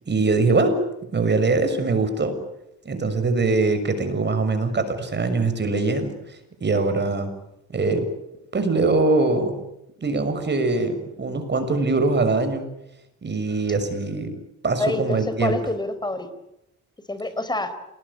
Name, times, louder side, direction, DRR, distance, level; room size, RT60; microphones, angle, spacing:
voice 1, 0.1-0.8 1.1-2.4 2.8-6.2 6.6-7.3 7.7-8.0 8.5-9.6 10.0-12.6 13.2-14.3 14.6-15.6, right 3 dB, 35° right, 9 dB, 6.6 m, -22 dB
voice 2, 14.8-16.3 17.1-17.7, left 2 dB, 15° left, 12 dB, 4.6 m, -27 dB
28.5 x 20.0 x 10.0 m, 0.84 s
cardioid pair, 90°, 30 cm